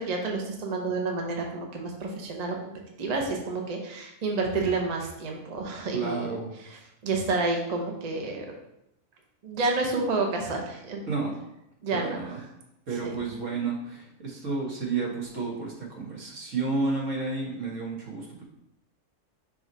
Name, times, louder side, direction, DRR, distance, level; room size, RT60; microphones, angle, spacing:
voice 1, 0.0-2.7 3.0-8.5 9.4-11.0 11.8-12.3 12.9-13.2, right 3 dB, 35° right, 1 dB, 0.8 m, -30 dB
voice 2, 5.9-6.6 11.1-11.3 11.9-12.4 12.9-18.4, right 4 dB, 70° right, -3 dB, 1.8 m, -31 dB
5.8 x 3.0 x 5.4 m, 0.84 s
omnidirectional pair, 1.4 m